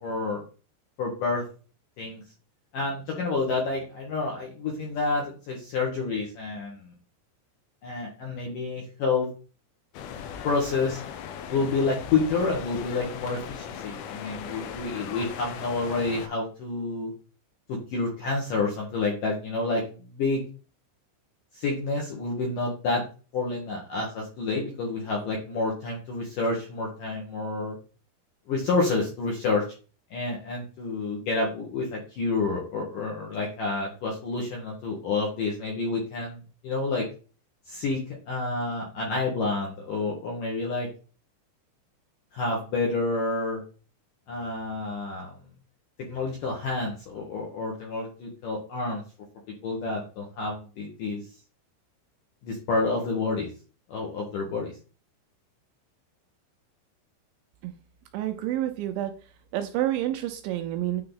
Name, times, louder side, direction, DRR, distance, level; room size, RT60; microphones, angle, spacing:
voice 1, 0.0-0.4 1.0-1.4 2.0-2.2 2.7-6.9 7.8-9.3 10.4-11.0 11.5-17.1 17.7-19.8 20.1-20.4 21.5-23.0 23.3-27.8 28.5-29.6 30.1-37.1 37.7-40.9 42.3-43.6 44.3-45.3 46.0-49.0 49.6-51.2 52.4-53.5 53.9-54.7, left 3 dB, 65° left, -2 dB, 2.1 m, -29 dB
sound 1, 9.9-16.3, left 8 dB, 90° left, 3.5 m, -38 dB
voice 2, 58.1-59.1 59.5-61.0, right 13 dB, 80° right, 6 dB, 2.8 m, -28 dB
9.7 x 3.8 x 3.9 m, 0.36 s
omnidirectional pair, 5.7 m